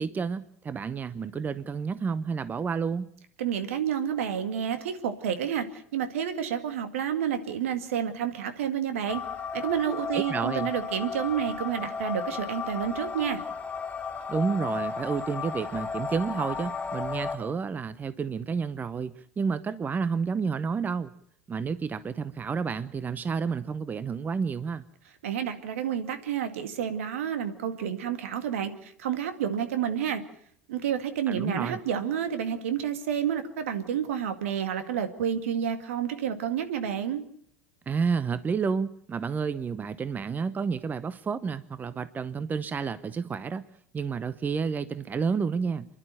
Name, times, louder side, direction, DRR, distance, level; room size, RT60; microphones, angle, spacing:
voice 1, 0.0-3.1 10.1-10.7 14.3-21.1 21.5-24.8 31.3-31.8 37.9-43.6 43.9-45.9, right 5 dB, 25° right, 15 dB, 0.8 m, -30 dB
voice 2, 3.4-9.2 9.5-13.4 25.2-30.2 30.7-37.2, right 8 dB, 75° right, 9 dB, 2.1 m, -30 dB
sound 1, 9.1-17.4, left 5 dB, 15° left, 4.4 m, -34 dB
28.0 x 11.5 x 9.1 m, 0.64 s
hypercardioid pair, 80°, 7 cm